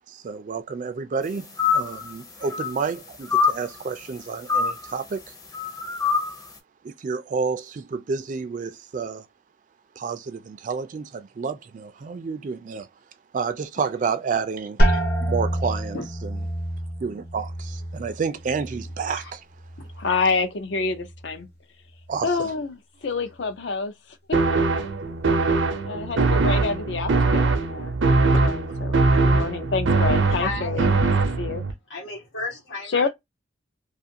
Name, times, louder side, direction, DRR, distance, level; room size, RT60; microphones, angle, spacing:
voice 1, 0.1-5.2 6.8-9.3 10.0-12.9 13.3-14.8 15.2-16.3 17.0-19.4 22.1-22.3, right 5 dB, 45° right, 0.3 m, -30 dB
sound 1, 1.6-2.1 2.4-2.9 3.3-3.6 4.5-5.0 5.5-6.4, left 5 dB, 20° left, 0.6 m, -24 dB
sound 2, 14.8-20.4 20.7-21.4 22.0-22.4, equal, 55° left, 1.1 m, -27 dB
voice 2, 20.0-21.5 22.2-24.4 25.8-31.1 31.4-31.6 32.9-33.1, left 4 dB, 75° left, 0.6 m, -28 dB
sound 3, 24.3-31.7, right 3 dB, 85° right, 0.6 m, -21 dB
voice 3, 30.3-30.9 31.9-33.1, left 3 dB, 90° left, 1.1 m, -33 dB
2.5 x 2.4 x 2.7 m
head